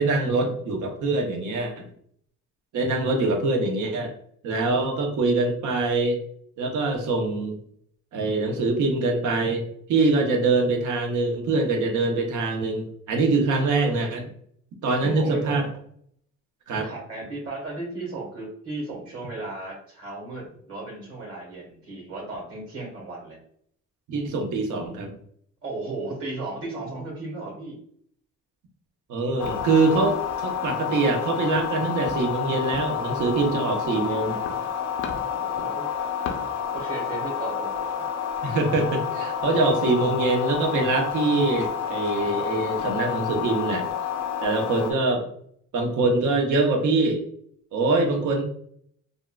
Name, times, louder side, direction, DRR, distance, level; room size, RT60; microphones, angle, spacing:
voice 1, 0.0-1.9 2.7-4.1 4.4-6.2 6.6-7.6 8.1-14.2 14.8-15.6 16.7-16.9 24.1-25.1 29.1-34.4 38.4-43.9 44.4-45.2 45.7-47.2 47.7-48.4, right 3 dB, 80° right, 3 dB, 0.8 m, -24 dB
voice 2, 15.0-15.7 16.7-23.4 25.6-27.8 35.3-36.0 36.7-38.1, right 2 dB, 50° right, -2 dB, 1.5 m, -35 dB
sound 1, 29.4-44.9, left 8 dB, 80° left, 0.6 m, -29 dB
3.5 x 2.4 x 2.2 m, 0.64 s
cardioid pair, 90°, 30 cm